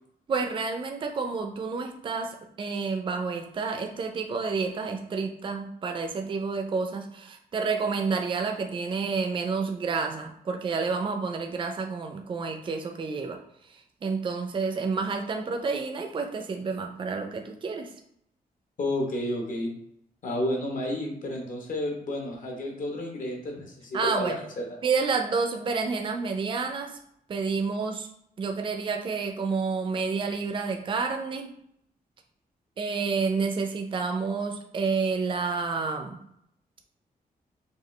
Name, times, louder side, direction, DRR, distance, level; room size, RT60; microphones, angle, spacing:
voice 1, 0.3-13.4 14.0-17.9 23.9-24.4 24.8-27.0 27.3-28.1 28.4-31.5 32.8-36.2, right 4 dB, 35° right, 4 dB, 0.4 m, -29 dB
voice 2, 18.8-19.7 20.2-24.7, left 1 dB, 60° left, 1 dB, 1.0 m, -31 dB
4.9 x 2.4 x 3.2 m, 0.72 s
wide cardioid pair, 155°, 16 cm